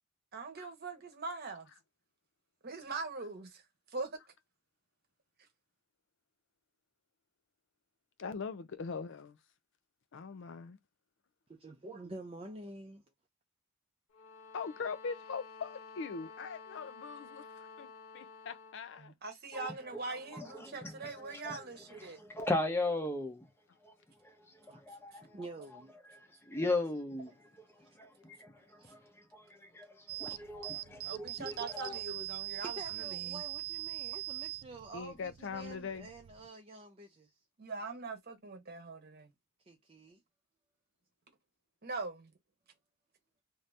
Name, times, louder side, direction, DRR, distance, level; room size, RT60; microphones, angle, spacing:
voice 1, 0.3-1.7 2.6-3.6 3.9-4.2 19.0-22.2 28.8-28.9 31.1-33.4 37.6-39.3 41.8-42.3, right 3 dB, 45° right, 0.9 m, -42 dB
voice 2, 8.2-9.4 10.1-10.8 14.5-17.5 17.8-19.1 20.1-20.2 25.2-25.3 34.9-36.1, left 5 dB, 55° left, 0.4 m, -41 dB
voice 3, 11.5-13.0 24.7-24.8 25.3-25.9 27.7-27.9 28.5-28.6 32.6-37.3 39.7-40.2, right 2 dB, 25° right, 0.5 m, -48 dB
sound 1, 14.1-18.8, left 5 dB, 80° left, 0.8 m, -51 dB
voice 4, 19.5-20.0 20.3-23.5 23.8-23.9 24.2-25.4 26.1-27.3 27.8-32.0, left 2 dB, 10° left, 0.7 m, -38 dB
sound 2, 30.1-36.5, right 18 dB, 80° right, 0.4 m, -42 dB
2.7 x 2.6 x 3.3 m
head